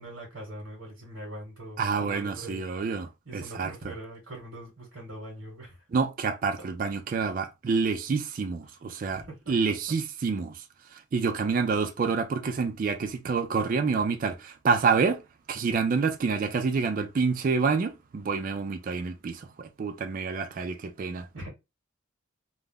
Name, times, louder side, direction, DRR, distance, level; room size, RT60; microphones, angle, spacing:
voice 1, 0.0-2.7 3.2-5.8 6.6-6.7 8.6-8.8 9.1-9.6 21.3-21.5, right 1 dB, 70° right, 1.0 m, -42 dB
voice 2, 1.8-3.7 5.9-10.5 11.1-15.2 15.5-21.3, right 5 dB, 45° right, 0.3 m, -28 dB
2.3 x 2.0 x 3.4 m
head